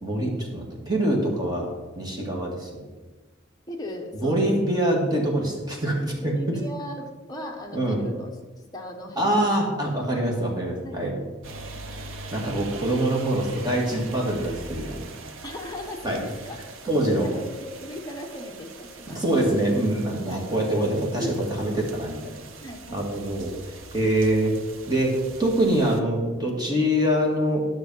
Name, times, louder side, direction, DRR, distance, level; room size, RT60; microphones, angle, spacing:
voice 1, 0.0-2.7 4.2-6.3 7.7-8.0 9.2-11.2 12.3-15.1 16.0-16.2 16.8-17.3 19.1-21.3 21.6-22.3 22.9-23.5 23.9-24.6 24.9-27.7, right 1 dB, 20° right, -2 dB, 2.0 m, -24 dB
voice 2, 3.7-5.2 6.2-8.3 8.7-9.4 10.0-11.0 13.3-13.5 15.4-16.6 17.2-19.5 20.3-20.5 21.2-21.4 22.6-23.0, left 1 dB, 20° left, 1 dB, 1.1 m, -37 dB
sound 1, 11.4-26.0, right 3 dB, 70° right, 0.8 m, -42 dB
10.5 x 6.4 x 5.6 m, 1.2 s
head